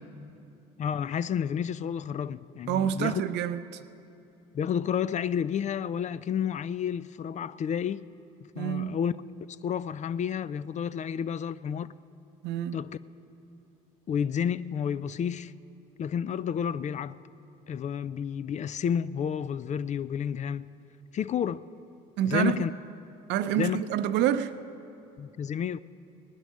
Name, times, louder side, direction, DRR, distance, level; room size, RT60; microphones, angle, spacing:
voice 1, 0.8-3.2 4.5-8.1 8.6-9.1 9.6-11.9 12.7-13.0 14.1-15.5 16.0-17.2 17.7-20.7 21.1-21.7 22.3-22.7 23.6-23.8 25.2-25.8, left 8 dB, 40° left, 0.4 m, -30 dB
voice 2, 2.7-3.6 8.6-9.0 12.4-12.8 22.2-22.6 23.3-24.5, right 11 dB, 70° right, 0.6 m, -27 dB
19.0 x 10.5 x 6.3 m
supercardioid pair, 75°, 18 cm